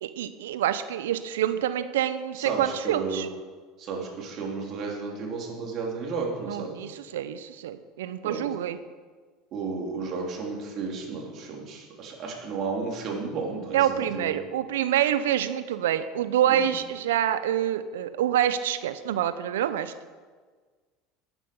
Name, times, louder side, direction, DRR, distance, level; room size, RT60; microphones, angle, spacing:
voice 1, 0.0-3.3 6.5-8.8 13.7-19.9, right 11 dB, 80° right, 12 dB, 0.7 m, -26 dB
voice 2, 2.4-3.2 3.8-6.8 8.2-8.5 9.5-14.4 16.5-16.7, right 4 dB, 50° right, -1 dB, 3.6 m, -33 dB
12.0 x 9.0 x 5.5 m, 1.5 s
hypercardioid pair, 80°, 0 cm